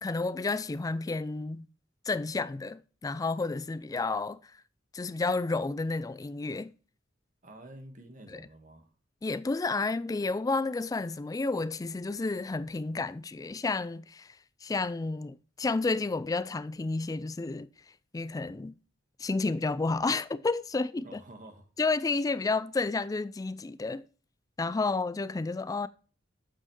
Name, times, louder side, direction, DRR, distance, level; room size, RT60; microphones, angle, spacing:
voice 1, 0.0-1.7 2.1-4.5 4.9-6.7 8.3-8.5 9.2-17.7 18.1-18.7 19.2-21.2 21.8-24.0 24.6-25.9, left 3 dB, 20° left, 0.3 m, -31 dB
voice 2, 7.4-8.9 21.0-21.7, right 1 dB, 45° right, 1.5 m, -49 dB
8.4 x 5.5 x 3.1 m
head